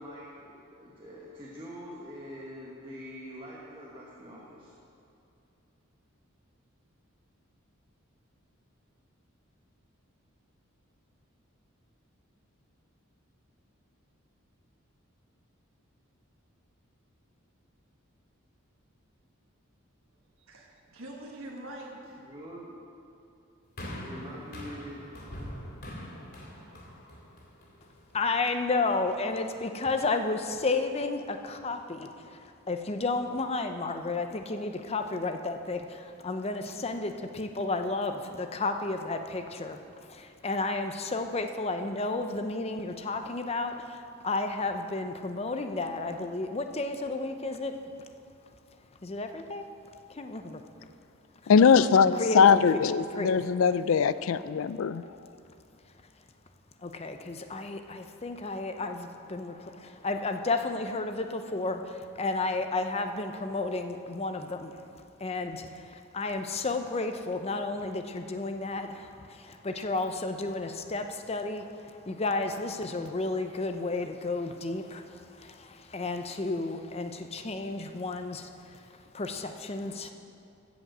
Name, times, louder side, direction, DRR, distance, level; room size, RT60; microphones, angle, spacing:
voice 1, 0.0-4.7 22.0-22.8 23.9-25.0, equal, 25° right, -6 dB, 1.3 m, -44 dB
voice 2, 20.5-22.2 25.5-25.9 31.3-31.4 36.4-36.5, right 1 dB, 75° right, -2 dB, 1.5 m, -45 dB
sound 1, 23.8-28.1 28.9-29.0, equal, 50° left, 2.2 m, -42 dB
voice 3, 28.1-32.1 32.7-47.7 49.0-49.7 50.1-50.6 52.1-52.9 53.2-53.4 56.8-64.8 65.2-78.8 79.1-80.1, left 3 dB, 30° left, 6 dB, 0.6 m, -32 dB
voice 4, 51.5-55.0, left 6 dB, 75° left, 15 dB, 0.4 m, -21 dB
14.0 x 5.2 x 7.8 m, 2.6 s
head